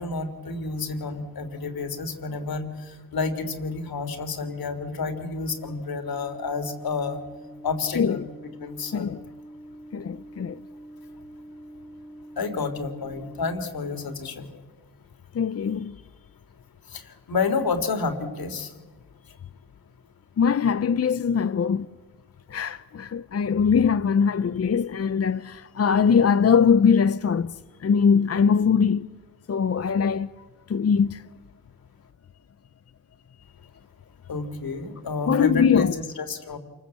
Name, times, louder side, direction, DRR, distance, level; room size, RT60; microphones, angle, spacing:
voice 1, 0.0-7.2 7.6-8.2 8.6-9.2 12.4-14.5 16.9-18.7 34.3-35.9 36.2-36.6, left 4 dB, 75° left, 3.4 m, -30 dB
sound 1, 5.5-13.6, right 1 dB, 10° left, 3.3 m, -45 dB
voice 2, 7.9-8.3 8.9-9.2 9.9-10.6 15.3-16.0 20.4-21.9 22.5-27.6 27.8-29.1 29.5-30.3 30.7-31.2 35.3-35.9, left 6 dB, 40° left, 0.7 m, -21 dB
28.0 x 20.5 x 8.4 m
cardioid pair, 95°, 37 cm